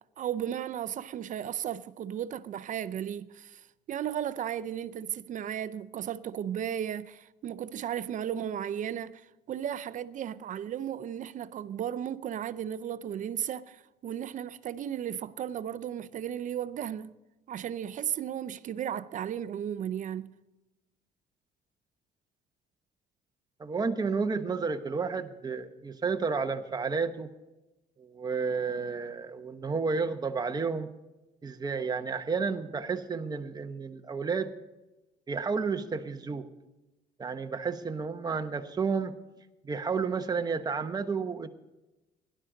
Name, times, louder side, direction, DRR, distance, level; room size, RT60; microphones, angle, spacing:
voice 1, 0.2-17.2 17.5-20.3, right 10 dB, 50° right, 0.5 m, -35 dB
voice 2, 23.6-27.3 28.0-30.9 31.4-34.5 35.3-36.5 37.2-39.1 39.6-41.5, right 5 dB, 25° right, 1.0 m, -31 dB
17.5 x 11.5 x 3.9 m
cardioid pair, 110°, 17 cm